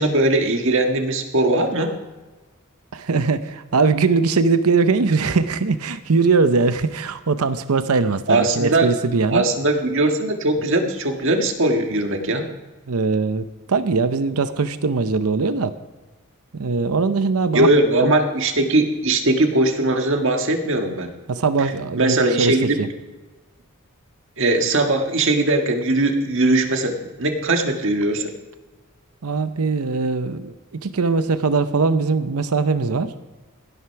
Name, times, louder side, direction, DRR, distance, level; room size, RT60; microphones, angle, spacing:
voice 1, 0.0-1.9 8.3-8.9 9.3-12.4 17.5-21.1 22.0-22.8 24.4-28.3, right 2 dB, 60° right, 4 dB, 1.6 m, -20 dB
voice 2, 2.9-9.4 12.9-15.7 16.5-17.7 18.0-18.1 21.3-22.9 29.2-30.6 30.8-33.1, right 4 dB, 85° right, 12 dB, 0.7 m, -21 dB
16.5 x 8.0 x 5.8 m, 1.2 s
head